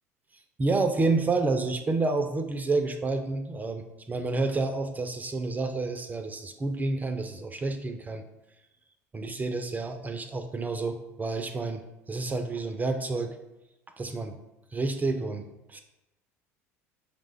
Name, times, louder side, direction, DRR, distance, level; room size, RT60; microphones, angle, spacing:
voice 1, 0.3-8.2 9.1-13.4 14.0-14.4 14.7-15.8, right 3 dB, 20° right, 7 dB, 0.3 m, -29 dB
4.9 x 2.2 x 3.4 m, 0.95 s
hypercardioid pair, 70°, 8 cm